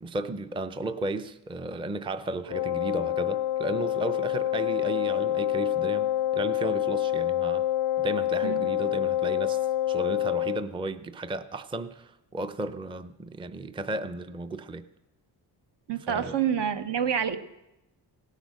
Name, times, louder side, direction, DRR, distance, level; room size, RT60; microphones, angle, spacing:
voice 1, 0.0-7.7 8.0-9.6 9.9-14.8 16.1-16.3, right 2 dB, 15° right, 0.4 m, -34 dB
Wind instrument woodwind instrument, 2.5-10.7, left 12 dB, 90° left, 0.5 m, -27 dB
voice 2, 15.9-17.4, right 8 dB, 75° right, 1.1 m, -27 dB
17.0 x 10.5 x 6.3 m
wide cardioid pair, 125°, 42 cm